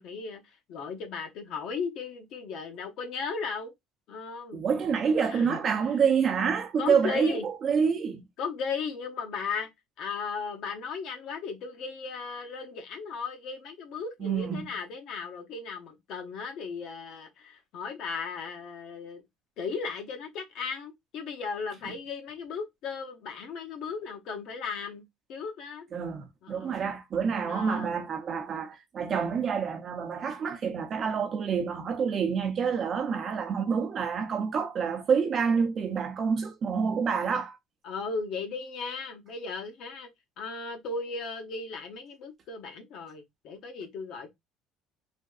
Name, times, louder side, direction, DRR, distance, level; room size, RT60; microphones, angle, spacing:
voice 1, 0.0-3.7 4.1-4.6 5.2-5.6 6.8-7.4 8.4-9.7 10.0-19.2 19.6-25.0 25.3-25.9 26.4-26.8 27.4-28.0 37.8-40.1 40.4-44.3, left 5 dB, 60° left, 0.7 m, -36 dB
voice 2, 4.5-8.2 14.2-14.6 25.9-37.6, right 6 dB, 35° right, 0.6 m, -27 dB
3.4 x 2.6 x 2.3 m
cardioid pair, 145°, 0 cm